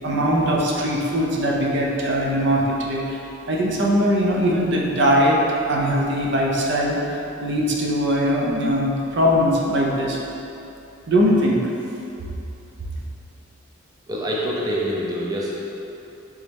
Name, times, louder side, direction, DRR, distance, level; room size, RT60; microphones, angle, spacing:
voice 1, 0.0-3.2 3.5-5.4 5.7-10.2 11.1-11.6, equal, 60° right, -2 dB, 0.6 m, -21 dB
voice 2, 14.1-15.6, equal, 20° right, -5 dB, 0.5 m, -25 dB
4.1 x 3.5 x 3.4 m, 2.9 s
head